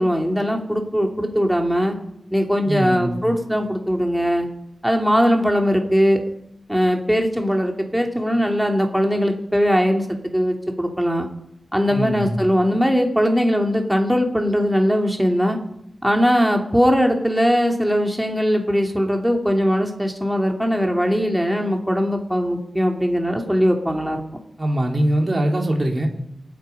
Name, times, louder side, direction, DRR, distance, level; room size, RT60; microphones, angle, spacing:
voice 1, 0.0-1.9 2.3-4.5 4.8-6.2 6.7-11.3 11.7-15.6 16.0-24.2, equal, 5° right, 2 dB, 2.9 m, -20 dB
voice 2, 2.6-3.2 11.9-12.4 24.6-26.1, right 1 dB, 35° right, 1 dB, 3.3 m, -22 dB
27.5 x 9.5 x 5.3 m, 0.79 s
wide cardioid pair, 75°, 0 cm